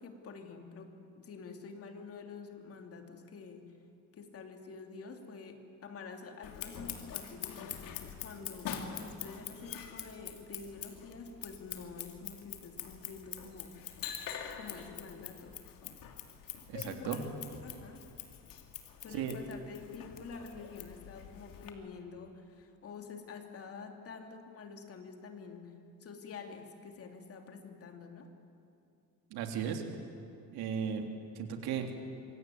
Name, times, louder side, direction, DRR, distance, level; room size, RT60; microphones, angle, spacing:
voice 1, 0.0-3.7 4.1-8.8 9.0-13.8 14.5-15.6 16.7-17.3 17.6-18.1 19.0-28.3, left 5 dB, 40° left, 4 dB, 2.9 m, -48 dB
Scissors, 6.4-21.7, left 9 dB, 60° left, 2.8 m, -45 dB
voice 2, 16.7-17.2 19.1-19.3 29.3-29.8 30.5-31.1 31.3-31.9, right 8 dB, 85° right, 4 dB, 3.3 m, -35 dB
26.0 x 24.5 x 9.4 m, 2.6 s
cardioid pair, 160°, 37 cm